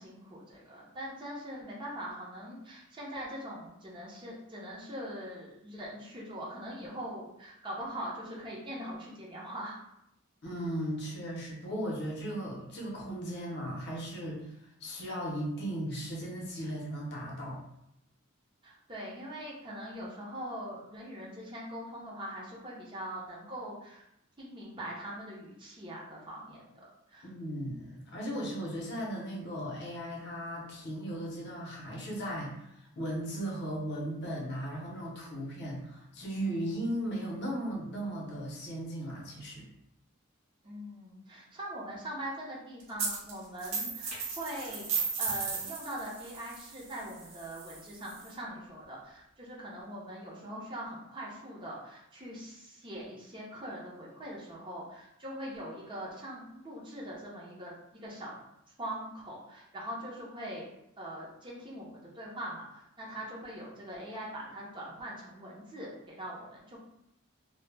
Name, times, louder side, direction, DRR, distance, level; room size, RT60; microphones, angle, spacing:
voice 1, 0.0-9.8 18.6-24.0 24.4-27.3 40.6-44.9 45.2-58.3 58.8-60.6 61.0-66.8, equal, 25° right, -5 dB, 0.6 m, -42 dB
voice 2, 10.4-14.5 14.8-17.6 27.2-39.7, right 1 dB, 55° left, -3 dB, 0.6 m, -37 dB
sound 1, 43.0-43.3 43.6-48.3, right 4 dB, 80° right, 0.7 m, -35 dB
2.1 x 2.0 x 3.2 m, 0.79 s
head